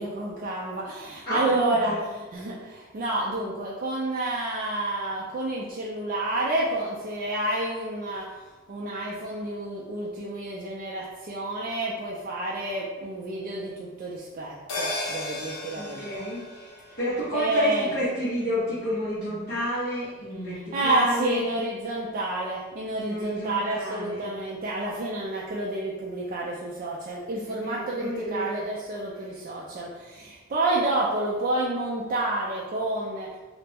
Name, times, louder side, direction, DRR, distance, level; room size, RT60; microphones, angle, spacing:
voice 1, 0.0-8.2 8.7-16.3 17.3-17.9 20.7-33.3, right 2 dB, 40° right, -5 dB, 0.4 m, -29 dB
voice 2, 1.2-2.0 15.8-16.7 17.0-21.4 23.0-24.3 27.5-28.7, equal, 45° left, -11 dB, 0.8 m, -30 dB
sound 1, 14.7-19.4 19.7-19.8, left 2 dB, 75° left, 0.8 m, -37 dB
3.2 x 2.0 x 3.4 m, 1.3 s
head